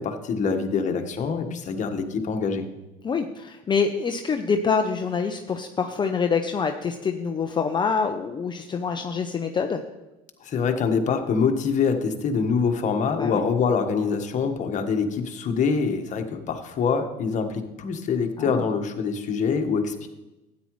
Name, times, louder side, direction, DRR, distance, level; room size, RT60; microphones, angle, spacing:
voice 1, 0.0-2.6 10.4-20.1, left 5 dB, 40° left, 5 dB, 1.4 m, -25 dB
voice 2, 3.0-9.8 13.2-13.4 18.4-18.7, left 5 dB, 25° left, 5 dB, 0.6 m, -26 dB
13.0 x 9.5 x 3.2 m, 1.0 s
supercardioid pair, 105°, 18 cm